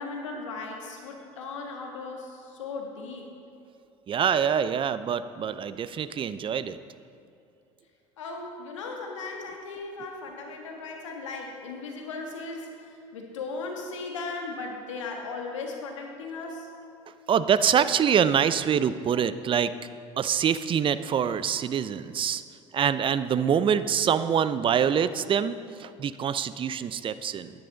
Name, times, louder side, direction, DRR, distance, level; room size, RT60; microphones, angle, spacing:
voice 1, 0.0-3.3 8.2-16.7, left 3 dB, 85° left, 1 dB, 1.4 m, -37 dB
voice 2, 4.1-6.8 17.3-19.7 20.2-22.4 22.7-27.5, right 8 dB, 35° right, 14 dB, 0.5 m, -25 dB
10.0 x 9.9 x 3.8 m, 2.7 s
hypercardioid pair, 70°, 15 cm